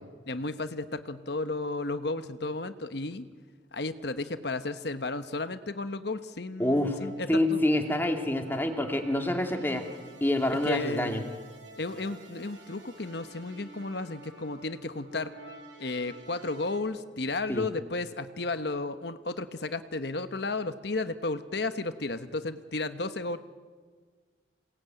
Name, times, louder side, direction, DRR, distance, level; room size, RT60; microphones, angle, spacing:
voice 1, 0.3-3.3 3.7-7.6 10.5-11.3 11.8-15.3 15.8-23.4, left 3 dB, 60° left, 11 dB, 1.1 m, -33 dB
voice 2, 6.6-7.0 7.3-9.9 10.2-11.2 17.5-17.7, left 1 dB, 10° left, 4 dB, 2.4 m, -27 dB
sound 1, 6.6-16.8, right 1 dB, 80° right, 7.1 m, -49 dB
27.5 x 19.0 x 9.0 m, 1.5 s
head